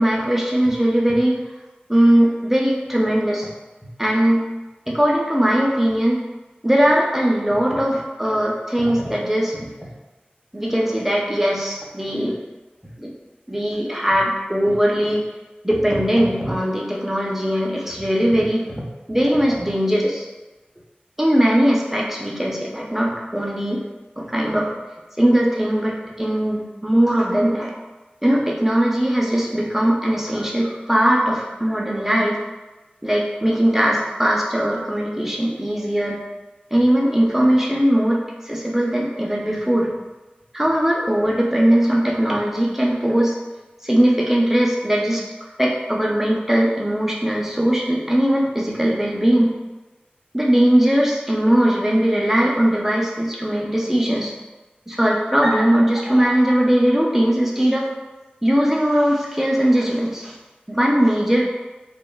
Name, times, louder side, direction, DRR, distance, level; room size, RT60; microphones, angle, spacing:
voice 1, 0.0-1.4 1.9-3.5 4.0-4.4 4.9-6.2 6.6-9.6 10.5-12.4 13.0-13.1 13.5-15.2 15.6-20.3 21.2-23.8 24.2-24.7 25.2-27.7 28.2-32.4 33.0-36.2 36.7-38.2 38.4-39.9 40.5-43.4 43.8-45.2 45.6-49.5 50.3-54.3 54.9-57.9 58.4-60.3 60.7-61.4, equal, 10° right, -3 dB, 0.5 m, -19 dB
2.9 x 2.1 x 2.3 m, 1.1 s
wide cardioid pair, 45°, 3 cm